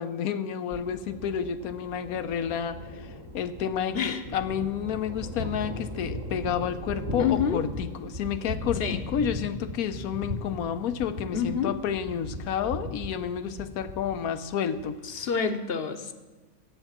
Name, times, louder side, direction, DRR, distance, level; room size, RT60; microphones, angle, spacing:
voice 1, 0.0-15.0, left 8 dB, 85° left, 11 dB, 1.2 m, -30 dB
Thunder, 0.7-15.5, left 1 dB, 60° right, 2.3 m, -38 dB
voice 2, 7.2-7.6 8.8-9.0 11.3-11.7 15.0-16.1, left 7 dB, 50° left, 8 dB, 1.0 m, -28 dB
13.5 x 9.1 x 7.4 m, 1.3 s
omnidirectional pair, 1.5 m